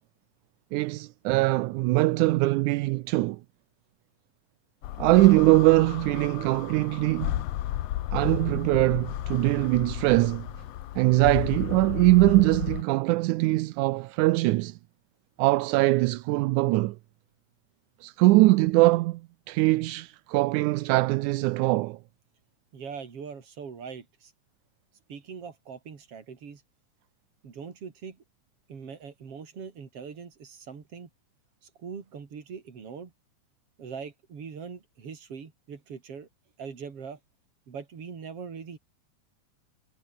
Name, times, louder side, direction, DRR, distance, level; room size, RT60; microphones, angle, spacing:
voice 1, 0.7-3.4 5.0-7.4 8.1-10.5 11.0-14.8 15.4-17.0 18.0-19.2 19.5-22.0, right 19 dB, 80° right, 2.0 m, -22 dB
sound 1, 4.8-12.8, left 13 dB, 65° left, 1.9 m, -34 dB
voice 2, 22.7-24.3 25.1-26.6 27.4-28.2 28.7-31.1 31.6-33.1 33.8-36.3 36.6-37.2 37.7-38.8, right 6 dB, 50° right, 3.9 m, -41 dB
omnidirectional pair, 3.5 m